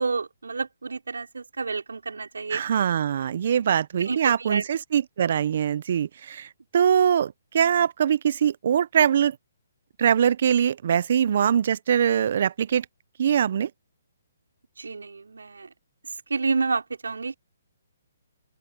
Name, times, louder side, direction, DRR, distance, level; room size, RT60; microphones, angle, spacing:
voice 1, 0.0-2.6 4.1-4.7 14.8-15.7 16.3-17.4, right 4 dB, 85° right, 5.0 m, -29 dB
voice 2, 2.5-9.4 10.0-12.8 13.2-13.7, right 8 dB, 55° right, 0.9 m, -22 dB
open air
hypercardioid pair, 145°, 0 cm